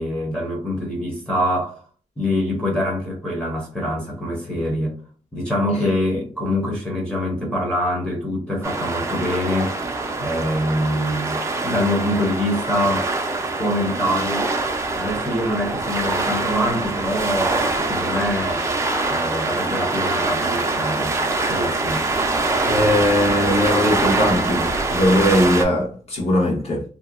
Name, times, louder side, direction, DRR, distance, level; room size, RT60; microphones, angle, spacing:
voice 1, 0.0-1.8 2.2-5.0 5.3-9.8 10.2-13.1 13.6-14.5 14.9-18.7 19.1-21.2 21.5-22.1, left 1 dB, 5° left, 0.7 m, -24 dB
sound 1, 8.6-25.6, right 3 dB, 20° right, 0.4 m, -24 dB
voice 2, 22.6-26.8, left 1 dB, 50° left, 1.1 m, -20 dB
2.7 x 2.1 x 2.4 m
wide cardioid pair, 135°, 13 cm